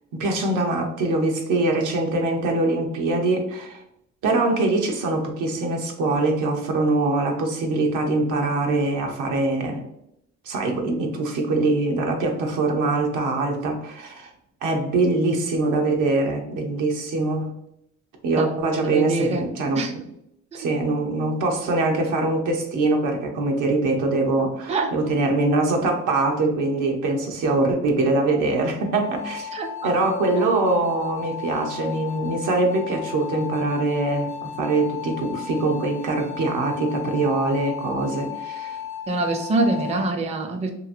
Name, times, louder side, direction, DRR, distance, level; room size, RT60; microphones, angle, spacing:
voice 1, 0.1-3.8 4.2-9.8 10.5-14.3 14.6-17.5 18.2-20.0 20.5-29.6 29.8-38.8, right 2 dB, 85° right, 2 dB, 0.7 m, -23 dB
voice 2, 18.4-19.5 19.8-19.9 20.5-20.7 24.7-24.9 29.5-29.9 30.3-30.5 39.1-40.7, right 2 dB, 20° right, 5 dB, 0.4 m, -25 dB
sound 1, 28.9-40.1, left 10 dB, 45° left, 0.5 m, -35 dB
2.9 x 2.6 x 2.5 m, 0.77 s
cardioid pair, 90°, 30 cm